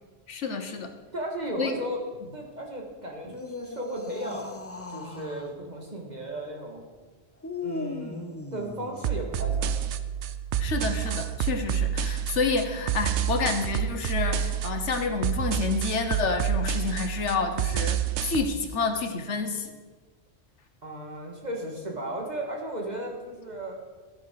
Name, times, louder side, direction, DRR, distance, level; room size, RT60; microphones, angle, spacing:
voice 1, 0.3-0.9 1.6-1.8 10.6-19.7, left 4 dB, 90° left, 7 dB, 1.4 m, -29 dB
voice 2, 1.1-2.0 2.3-4.6 4.9-6.8 7.6-9.9 20.8-23.8, right 1 dB, 40° right, 0 dB, 2.1 m, -35 dB
sound 1, 3.2-5.5 7.4-9.2 10.8-11.3, left 3 dB, 20° left, 0.5 m, -38 dB
sound 2, 9.0-18.4, right 9 dB, 80° right, 0.9 m, -28 dB
13.0 x 11.0 x 4.7 m, 1.3 s
omnidirectional pair, 1.2 m